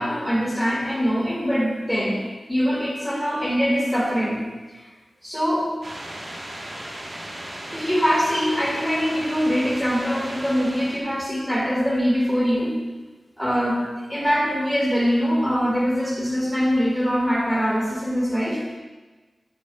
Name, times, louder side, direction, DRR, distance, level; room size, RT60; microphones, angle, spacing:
voice 1, 0.0-2.2 2.5-4.4 4.8-4.9 5.2-5.7 7.7-12.8 13.4-18.8, equal, 5° left, -3 dB, 1.7 m, -23 dB
sound 1, 5.8-11.0, right 1 dB, 35° right, 1.3 m, -36 dB
8.8 x 7.7 x 2.3 m, 1.3 s
wide cardioid pair, 120°, 0 cm